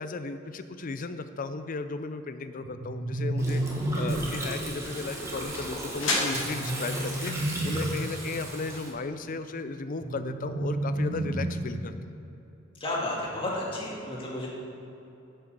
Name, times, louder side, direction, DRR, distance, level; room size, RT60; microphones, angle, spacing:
voice 1, 0.0-11.9, left 3 dB, 40° left, 10 dB, 0.5 m, -35 dB
sound 1, 2.6-4.6 6.3-8.2 10.0-12.0, right 1 dB, 50° right, 0.7 m, -31 dB
sound 2, 3.3-9.2, left 2 dB, 70° left, 2.0 m, -37 dB
Gurgling, 3.4-8.9, right 1 dB, 15° right, 1.3 m, -36 dB
voice 2, 12.7-14.5, left 1 dB, 25° left, -4 dB, 2.0 m, -32 dB
9.0 x 5.7 x 6.6 m, 2.9 s
head